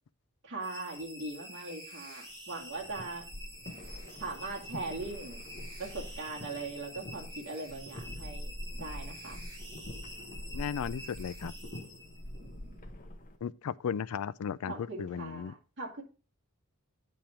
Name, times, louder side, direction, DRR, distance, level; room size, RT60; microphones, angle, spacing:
voice 1, 0.4-3.2 4.2-5.4 5.8-9.4 12.4-12.8 14.7-16.0, right 3 dB, 55° right, 2.3 m, -40 dB
sound 1, 0.6-12.5, equal, 20° right, 4.1 m, -48 dB
sound 2, 2.6-13.4, left 1 dB, 35° left, 1.0 m, -45 dB
voice 2, 10.5-11.5 13.4-15.5, left 7 dB, 75° left, 0.4 m, -35 dB
9.2 x 5.2 x 4.3 m
head